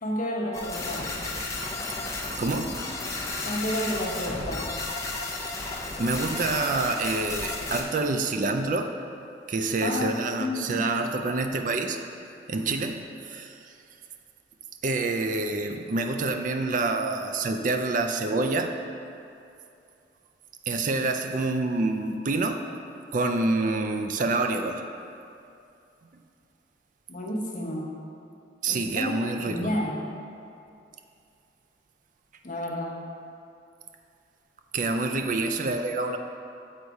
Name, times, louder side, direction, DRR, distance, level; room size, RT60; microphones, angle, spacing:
voice 1, 0.0-1.1 3.4-4.7 9.8-10.8 27.1-27.9 28.7-30.0 32.4-33.0, left 1 dB, 50° left, -2 dB, 1.0 m, -31 dB
sound 1, 0.5-7.8, left 2 dB, 20° left, 0.7 m, -33 dB
voice 2, 2.4-2.8 5.6-8.9 9.5-12.0 12.5-13.7 14.8-18.7 20.7-22.6 23.1-24.8 28.6-29.7 34.7-36.2, right 3 dB, 50° right, 5 dB, 0.4 m, -27 dB
8.0 x 4.1 x 4.7 m, 2.6 s
head